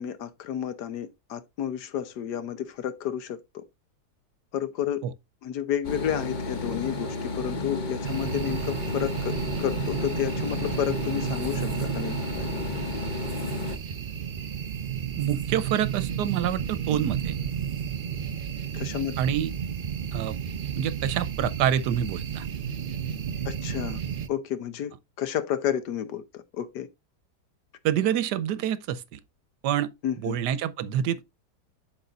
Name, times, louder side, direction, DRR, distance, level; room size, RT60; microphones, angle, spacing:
voice 1, 0.0-3.6 4.5-5.0 5.4-12.5 18.7-19.2 23.4-24.0 24.3-24.9 25.2-26.9 30.0-30.4, left 10 dB, 75° left, 1.4 m, -31 dB
sound 1, 5.8-13.8, left 3 dB, 40° left, 0.7 m, -32 dB
sound 2, 8.0-24.3, right 8 dB, 65° right, 0.5 m, -32 dB
voice 2, 15.2-17.3 19.2-19.5 20.1-20.4 20.8-22.4 27.8-29.2 29.6-29.9 30.2-31.2, right 10 dB, 80° right, 1.3 m, -27 dB
12.0 x 4.1 x 2.4 m
omnidirectional pair, 1.8 m